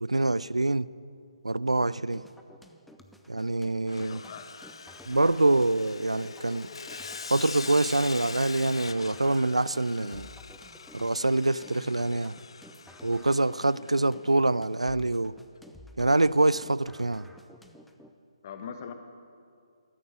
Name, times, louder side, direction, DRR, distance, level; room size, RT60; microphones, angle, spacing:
voice 1, 0.0-0.9 1.4-2.2 3.3-4.2 5.1-6.7 7.3-10.3 10.9-12.4 13.0-15.4 16.0-17.3, right 2 dB, 85° right, 0.4 m, -25 dB
sound 1, 2.1-18.1, left 1 dB, ahead, 0.7 m, -52 dB
Sawing, 3.9-14.1, left 5 dB, 60° left, 0.5 m, -43 dB
voice 2, 3.9-4.6 18.4-18.9, left 7 dB, 35° left, 1.3 m, -41 dB
15.0 x 13.0 x 7.2 m
figure-of-eight pair, 140°, 3 cm